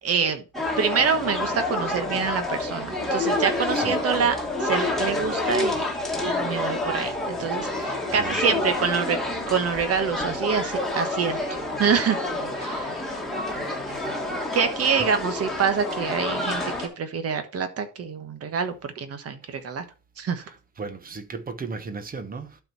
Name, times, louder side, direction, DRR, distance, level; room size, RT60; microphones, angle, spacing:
voice 1, 0.0-0.4 0.8-5.8 6.2-9.2 9.5-11.4 11.8-12.2 12.6-13.0 14.5-19.8 20.2-20.4, right 6 dB, 40° right, 1.3 m, -26 dB
sound 1, 0.5-16.9, left 2 dB, ahead, 2.0 m, -28 dB
voice 2, 8.1-8.6 12.7-12.8 13.4-14.4 20.8-22.6, right 4 dB, 25° right, 1.0 m, -36 dB
11.5 x 4.6 x 4.3 m
cardioid pair, 170°, 37 cm